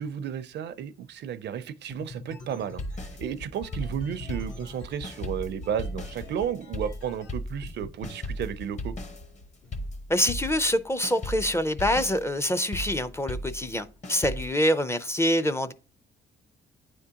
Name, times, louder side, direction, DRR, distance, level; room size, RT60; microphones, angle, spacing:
voice 1, 0.0-2.8 3.2-8.9, right 8 dB, 60° right, 0.5 m, -33 dB
sound 1, 1.9-7.3 7.6-8.1 8.4-9.9, left 2 dB, 85° left, 2.2 m, -43 dB
sound 2, 2.8-4.8 5.0-10.8 11.0-14.5, left 1 dB, 35° left, 1.0 m, -36 dB
voice 2, 10.1-15.7, equal, 15° left, 0.5 m, -25 dB
9.3 x 3.6 x 2.8 m
cardioid pair, 90°, 20 cm